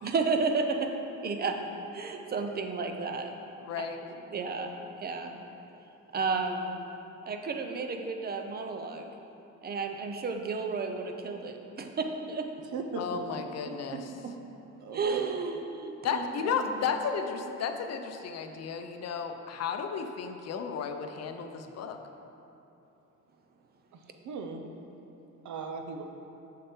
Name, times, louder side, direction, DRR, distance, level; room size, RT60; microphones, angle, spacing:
voice 1, 0.0-0.9 1.2-1.6 1.9-3.3 3.8-3.9 4.3-5.4 6.1-6.8 7.3-9.1 9.6-12.5 13.6-14.3 14.9-16.6, right 4 dB, 30° right, 5 dB, 0.5 m, -32 dB
voice 2, 3.6-4.0 13.0-14.0 16.0-22.0, left 6 dB, 55° left, 6 dB, 0.6 m, -33 dB
voice 3, 12.7-13.2 14.8-15.3 23.9-24.0 24.2-24.6 25.4-26.0, right 4 dB, 65° right, 5 dB, 0.7 m, -38 dB
6.7 x 6.6 x 4.4 m, 2.9 s
cardioid pair, 165°, 31 cm